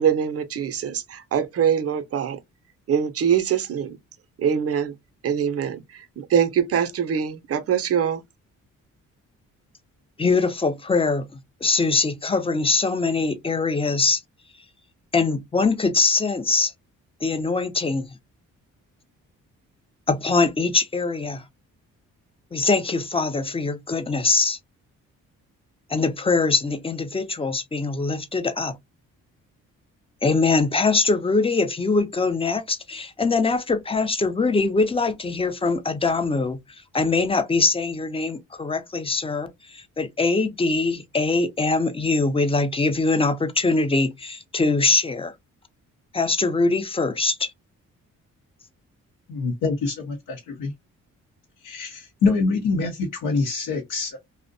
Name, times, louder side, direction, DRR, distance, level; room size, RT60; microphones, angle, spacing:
voice 1, 0.0-2.4 2.9-4.0 4.4-4.9 5.2-8.2, right 8 dB, 45° right, 0.6 m, -23 dB
voice 2, 10.2-14.2 15.1-16.7 17.2-18.1 20.1-21.4 22.5-24.6 25.9-28.8 30.2-36.6 36.9-45.3 46.1-47.5, left 3 dB, 15° left, 0.5 m, -22 dB
voice 3, 49.3-50.7 51.6-54.2, left 4 dB, 75° left, 0.7 m, -25 dB
2.5 x 2.1 x 2.5 m
cardioid pair, 65°, 33 cm